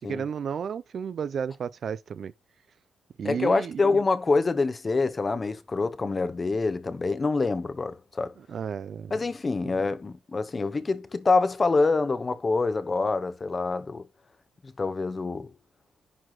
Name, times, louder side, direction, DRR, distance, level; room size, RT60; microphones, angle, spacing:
voice 1, 0.1-2.3 3.2-4.0 8.4-9.2 9.6-9.8, right 7 dB, 45° right, 0.4 m, -33 dB
voice 2, 3.2-8.3 9.1-14.1 14.8-15.5, left 3 dB, 20° left, 0.8 m, -26 dB
11.0 x 4.7 x 3.9 m
wide cardioid pair, 175°, 0 cm